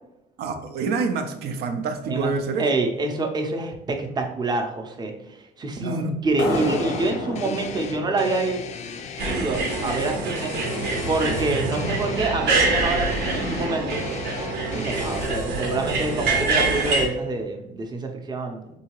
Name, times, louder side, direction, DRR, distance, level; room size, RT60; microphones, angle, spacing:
voice 1, 0.4-2.6 5.8-6.1 7.4-7.6 11.2-11.4 14.7-14.9, right 4 dB, 70° right, 8 dB, 0.5 m, -27 dB
voice 2, 2.6-8.7 9.0-10.5 11.0-14.0 14.7-18.6, right 3 dB, 25° right, 3 dB, 0.6 m, -27 dB
sound 1, 6.4-9.7, left 2 dB, 90° left, 0.7 m, -31 dB
sound 2, 6.5-15.3, left 7 dB, 45° left, 0.4 m, -39 dB
sound 3, 9.2-17.0, right 3 dB, 90° right, 0.9 m, -25 dB
3.8 x 2.7 x 2.9 m, 0.89 s
cardioid pair, 110°, 17 cm